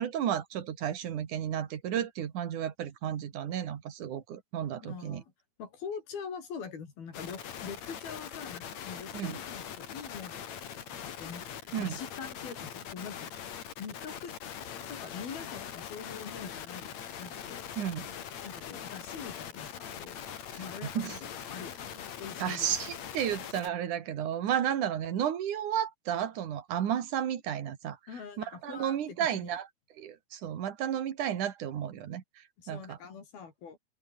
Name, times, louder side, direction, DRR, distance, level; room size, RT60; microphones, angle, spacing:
voice 1, 0.0-5.2 9.1-9.4 11.7-12.0 17.8-18.1 20.9-21.2 22.4-28.0 28.6-29.7 30.0-32.2 32.7-33.0, right 10 dB, 60° right, 3.2 m, -32 dB
voice 2, 4.8-5.3 5.6-13.4 13.8-14.3 14.9-17.7 18.4-20.2 20.6-22.9 28.1-29.6 32.6-33.8, left 6 dB, 75° left, 6.0 m, -44 dB
sound 1, 7.1-23.7, left 9 dB, 50° left, 2.9 m, -42 dB
omnidirectional pair, 4.4 m